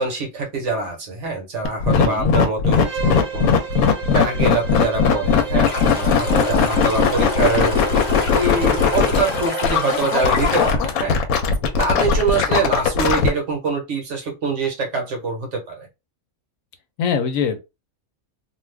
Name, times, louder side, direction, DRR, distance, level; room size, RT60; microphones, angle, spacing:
voice 1, 0.0-3.6 4.1-7.8 8.3-11.2 11.8-15.9, right 4 dB, 60° right, 1.1 m, -24 dB
sound 1, 1.6-13.3, left 6 dB, 90° left, 1.1 m, -18 dB
voice 2, 1.9-2.3 17.0-17.6, left 6 dB, 75° left, 1.0 m, -23 dB
Bowed string instrument, 2.8-10.4, right 8 dB, 80° right, 1.1 m, -33 dB
Stream, 5.6-10.7, left 3 dB, 40° left, 0.7 m, -28 dB
2.5 x 2.4 x 3.3 m
omnidirectional pair, 1.5 m